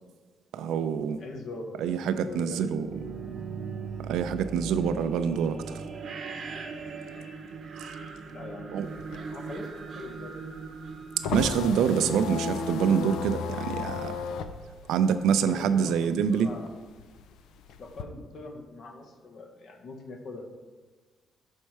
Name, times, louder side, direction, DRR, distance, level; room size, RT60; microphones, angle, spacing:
voice 1, 0.5-1.2 1.8-2.9 4.0-5.8 8.7-8.9 11.3-14.2 14.9-16.5, right 7 dB, 85° right, 11 dB, 0.4 m, -26 dB
voice 2, 1.2-2.9 8.3-10.3 14.8-14.9 15.4-16.7 17.8-20.5, left 2 dB, 60° left, 3 dB, 1.0 m, -42 dB
sound 1, 2.7-12.5, right 5 dB, 50° right, 0.8 m, -39 dB
sound 2, 8.8-15.9 16.3-18.0, left 6 dB, 85° left, 0.4 m, -35 dB
6.5 x 4.3 x 4.6 m, 1.4 s
cardioid pair, 90°, 0 cm